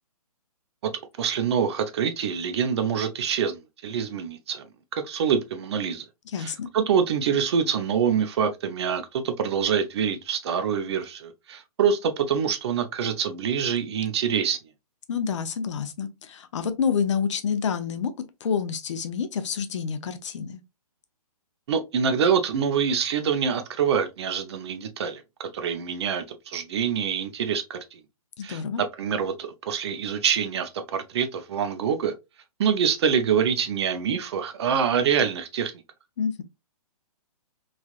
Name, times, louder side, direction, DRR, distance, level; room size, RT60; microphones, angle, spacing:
voice 1, 1.2-4.7 4.9-6.1 6.4-14.6 21.7-28.0 28.4-32.1 32.6-35.7, right 7 dB, 45° right, 0.5 m, -25 dB
voice 2, 6.3-6.7 15.1-18.1 18.4-20.6 28.4-28.8 36.2-36.4, left 6 dB, 50° left, 0.5 m, -28 dB
3.2 x 2.4 x 2.3 m
hypercardioid pair, 150°, 19 cm